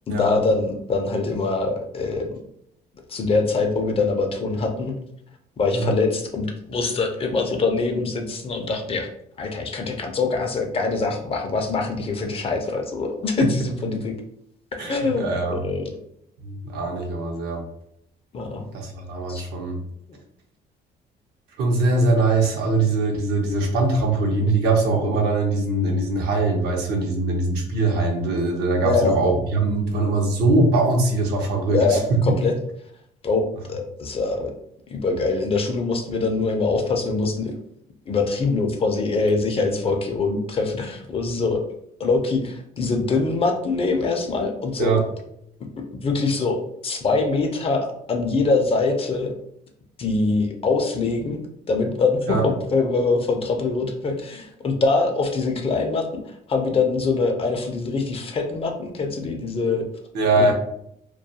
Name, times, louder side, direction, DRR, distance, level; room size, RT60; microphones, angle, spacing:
voice 1, 0.1-2.3 3.1-4.9 5.6-9.1 9.4-14.1 14.9-15.8 18.3-18.7 19.3-19.4 20.1-20.2 28.8-29.2 31.7-32.5 33.2-33.4 33.7-34.5 34.9-37.5 38.1-41.6 42.0-44.9 46.0-49.3 50.0-51.4 51.7-56.1 56.5-59.8 60.4-60.5, left 3 dB, 35° left, 4 dB, 0.5 m, -23 dB
voice 2, 14.8-15.6 16.4-17.6 18.7-19.8 21.6-32.0 44.8-45.0 52.3-52.4 60.1-60.5, right 2 dB, 75° right, 1 dB, 0.7 m, -22 dB
2.3 x 2.2 x 2.7 m, 0.74 s
cardioid pair, 110°, 17 cm